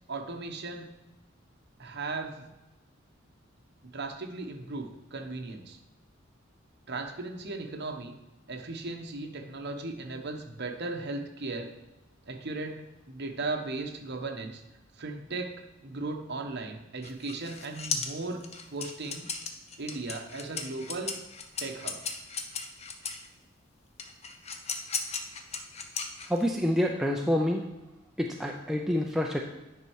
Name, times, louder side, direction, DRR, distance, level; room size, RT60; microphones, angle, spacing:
voice 1, 0.1-0.9 1.8-2.5 3.9-5.8 6.9-8.2 8.5-11.7 12.3-14.6 15.0-18.4 18.7-19.3 19.8-21.2 21.6-22.0, right 3 dB, 55° right, 4 dB, 1.0 m, -37 dB
sound 1, 17.0-23.3 24.0-26.6, left 5 dB, 35° left, 0.8 m, -36 dB
voice 2, 26.3-27.6 28.2-29.4, left 1 dB, ahead, 0 dB, 0.5 m, -27 dB
9.5 x 5.6 x 4.7 m, 1.0 s
head